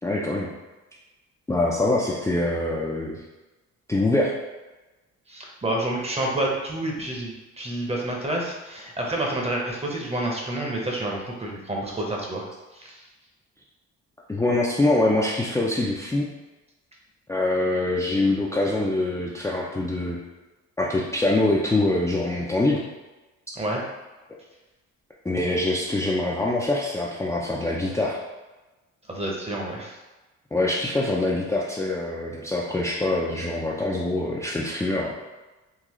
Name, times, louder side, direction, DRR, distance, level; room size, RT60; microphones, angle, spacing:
voice 1, 0.0-0.5 1.5-3.2 3.9-4.3 14.3-16.3 17.3-20.2 20.8-22.8 25.2-28.2 30.5-35.1, left 2 dB, 10° left, -5 dB, 0.4 m, -24 dB
voice 2, 5.3-12.4 12.7-13.0 23.6-23.8 29.1-30.0, right 1 dB, 20° right, -1 dB, 0.8 m, -29 dB
3.8 x 2.4 x 3.0 m, 1.1 s
cardioid pair, 90°, 30 cm